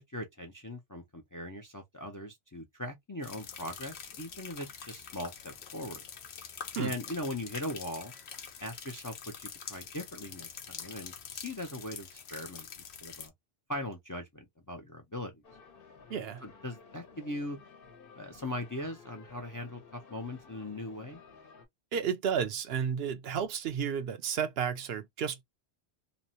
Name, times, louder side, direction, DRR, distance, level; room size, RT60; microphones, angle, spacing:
voice 1, 0.1-6.0 6.8-8.1 8.6-12.7 13.0-13.3 13.7-15.4 16.4-17.6 18.2-21.2, left 1 dB, 30° left, 0.4 m, -40 dB
sound 1, 3.2-13.3, left 7 dB, 80° left, 0.9 m, -45 dB
sound 2, 15.4-21.7, left 5 dB, 60° left, 1.0 m, -55 dB
voice 2, 16.1-16.4 21.9-25.4, right 7 dB, 75° right, 0.8 m, -32 dB
3.0 x 2.0 x 2.6 m
omnidirectional pair, 1.1 m